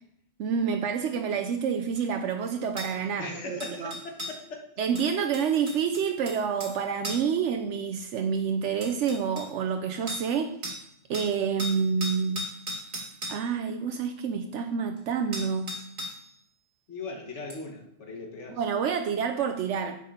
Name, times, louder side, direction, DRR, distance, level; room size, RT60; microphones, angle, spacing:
voice 1, 0.4-3.9 4.8-10.5 11.1-12.5 13.3-15.7 18.5-20.0, right 6 dB, 80° right, 5 dB, 0.9 m, -28 dB
sound 1, 2.0-2.1 2.8-2.9 3.6-4.4 5.0-6.8 7.0-7.4 8.4-8.5 8.8-9.5 10.1-10.3 10.6-10.9 11.1-13.4 15.0-15.1 15.3-16.3 17.5-17.6, equal, 45° right, 1.8 m, -37 dB
voice 2, 3.2-4.7 16.9-18.6, left 3 dB, 75° left, 2 dB, 1.6 m, -39 dB
7.8 x 5.3 x 5.5 m, 0.75 s
omnidirectional pair, 1.2 m